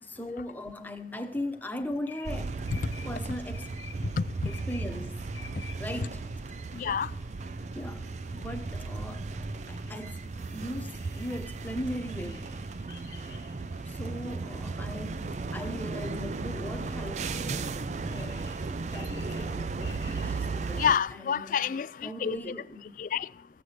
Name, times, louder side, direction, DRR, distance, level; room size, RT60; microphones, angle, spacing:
voice 1, 0.0-2.6 3.0-3.7 4.4-5.3 5.8-6.3 7.7-10.3 10.5-12.6 13.9-21.7 22.0-23.0, left 1 dB, 10° left, 1.0 m, -39 dB
sound 1, 2.0-21.1, left 7 dB, 85° left, 1.2 m, -54 dB
sound 2, 2.3-21.0, right 3 dB, 40° right, 0.4 m, -35 dB
voice 2, 4.0-4.3 6.7-7.2 20.8-22.4 23.0-23.5, left 7 dB, 50° left, 0.3 m, -29 dB
15.5 x 8.1 x 4.9 m
head